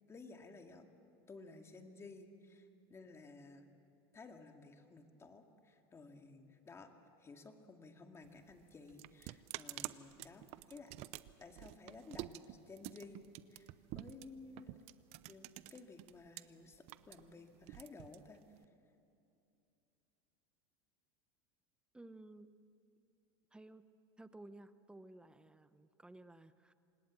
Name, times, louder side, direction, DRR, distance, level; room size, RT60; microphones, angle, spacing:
voice 1, 0.1-0.9 1.3-3.7 4.1-6.9 7.2-11.0 11.4-14.8 15.3-18.4, left 3 dB, 20° left, 5 dB, 2.2 m, -55 dB
sound 1, 8.2-16.4 16.7-18.7, right 17 dB, 55° right, 0.7 m, -49 dB
voice 2, 21.9-22.5 23.5-23.8 24.2-26.7, right 2 dB, 5° right, 12 dB, 0.8 m, -55 dB
26.0 x 19.5 x 7.5 m, 2.6 s
supercardioid pair, 115°, 13 cm